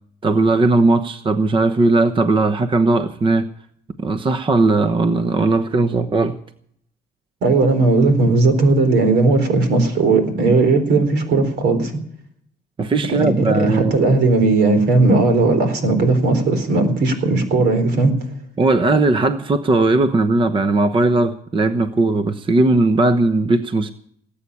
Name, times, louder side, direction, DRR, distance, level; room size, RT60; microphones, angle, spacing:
voice 1, 0.2-3.5 4.0-6.4 12.8-14.0 18.6-23.9, right 3 dB, 30° right, 10 dB, 1.0 m, -17 dB
voice 2, 7.4-11.9 13.1-18.2, right 3 dB, 75° right, 8 dB, 4.1 m, -16 dB
19.5 x 8.7 x 8.4 m, 0.65 s
cardioid pair, 110°, 17 cm